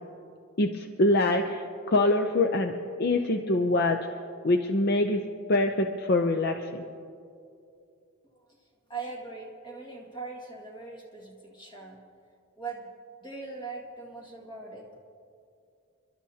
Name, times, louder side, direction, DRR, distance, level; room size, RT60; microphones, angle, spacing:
voice 1, 0.6-2.7 3.0-4.0 4.4-5.2 5.5-6.8, left 2 dB, 50° left, 5 dB, 0.6 m, -24 dB
voice 2, 8.9-12.0 12.6-12.9 13.2-14.8, right 4 dB, 25° left, -1 dB, 2.0 m, -40 dB
29.0 x 12.0 x 2.8 m, 2.5 s
head